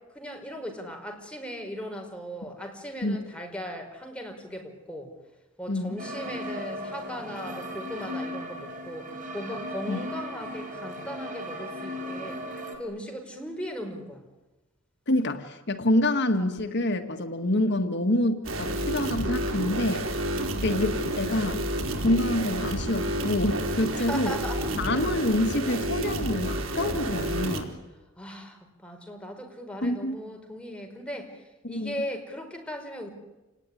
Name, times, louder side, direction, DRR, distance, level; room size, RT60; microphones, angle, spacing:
voice 1, 0.1-5.1 5.6-12.4 12.8-14.2 23.9-24.7 28.2-33.1, equal, 5° left, 2 dB, 5.0 m, -38 dB
voice 2, 5.7-6.0 9.9-10.0 15.1-20.1 20.6-21.7 22.0-24.4 24.8-27.7 29.8-30.1 31.6-31.9, left 1 dB, 60° left, 7 dB, 1.8 m, -27 dB
sound 1, 6.0-12.8, equal, 40° right, 4.7 m, -36 dB
sound 2, 18.4-27.6, right 1 dB, 80° right, 3.8 m, -30 dB
28.5 x 19.0 x 9.9 m, 1.1 s
head